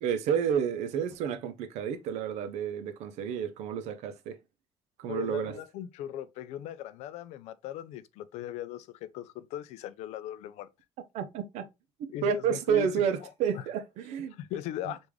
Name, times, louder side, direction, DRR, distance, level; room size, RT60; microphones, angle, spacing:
voice 1, 0.0-4.4 5.0-5.6 11.1-11.6 12.2-14.4, right 8 dB, 80° right, 0.5 m, -30 dB
voice 2, 5.1-10.7 12.1-13.3 13.5-13.7 14.3-15.1, left 11 dB, 80° left, 0.4 m, -39 dB
3.5 x 2.5 x 3.1 m
cardioid pair, 170°, 11 cm